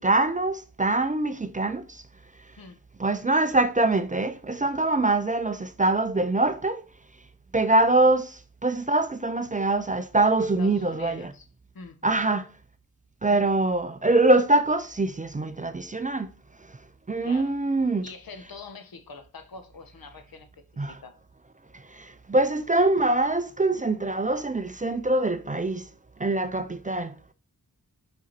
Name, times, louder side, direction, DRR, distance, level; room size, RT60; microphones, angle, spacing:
voice 1, 0.0-2.0 3.0-6.8 7.5-11.3 12.0-12.5 13.2-16.3 16.7-16.8 17.1-18.1 20.8-21.0 21.7-25.9 26.2-27.2, right 2 dB, 20° right, 0.4 m, -24 dB
voice 2, 10.4-11.5 11.7-12.0 13.3-13.5 17.2-17.5 18.0-20.5 20.7-21.1, left 4 dB, 75° left, 1.3 m, -44 dB
5.7 x 5.1 x 4.3 m
wide cardioid pair, 120°, 36 cm